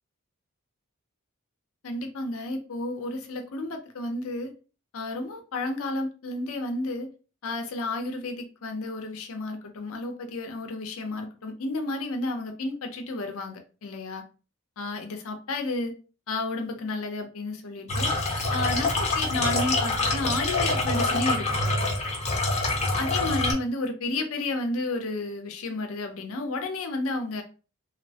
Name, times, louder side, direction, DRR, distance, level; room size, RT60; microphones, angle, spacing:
voice 1, 1.8-4.5 4.9-7.1 7.4-14.2 14.8-15.9 16.3-18.1 18.5-21.9 23.0-27.4, left 2 dB, 70° left, 5 dB, 0.6 m, -32 dB
sound 1, 17.9-23.5, left 2 dB, 30° left, 0.6 m, -26 dB
2.8 x 2.0 x 2.7 m, 0.34 s
head